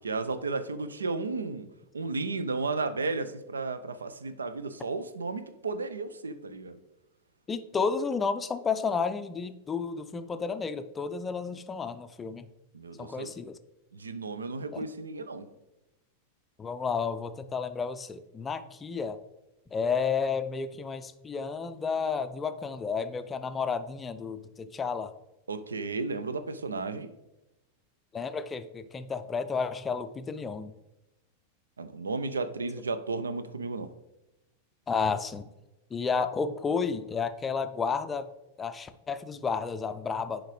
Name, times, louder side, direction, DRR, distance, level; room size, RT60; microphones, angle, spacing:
voice 1, 0.0-1.7 1.9-6.8 12.7-13.3 13.9-15.5 25.5-27.1 31.8-33.9, right 3 dB, 75° right, 0.5 m, -33 dB
voice 2, 7.5-12.5 13.0-13.6 14.7-14.9 16.6-19.2 19.7-25.1 28.1-30.7 34.9-35.5 35.9-38.3 38.6-40.5, left 5 dB, 20° left, 0.4 m, -31 dB
10.5 x 5.0 x 3.1 m
figure-of-eight pair, 90°, 0 cm